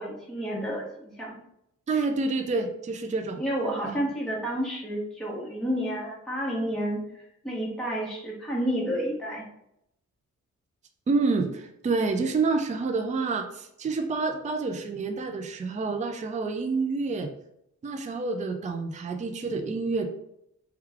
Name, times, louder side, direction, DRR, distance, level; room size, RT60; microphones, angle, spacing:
voice 1, 0.0-1.4 3.4-9.4, equal, ahead, -5 dB, 1.1 m, -30 dB
voice 2, 1.9-3.4 3.8-4.0 11.1-17.3 17.8-20.1, right 3 dB, 25° right, 5 dB, 0.4 m, -28 dB
3.2 x 2.3 x 3.4 m, 0.78 s
cardioid pair, 80°, 31 cm